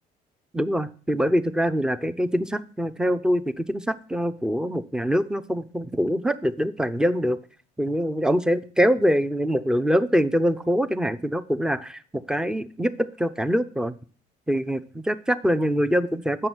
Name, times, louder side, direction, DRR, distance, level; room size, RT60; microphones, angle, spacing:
voice 1, 0.5-7.4 7.8-13.9 14.5-16.5, equal, 5° right, 14 dB, 0.6 m, -24 dB
7.7 x 6.4 x 6.1 m, 0.42 s
cardioid pair, 110°, 17 cm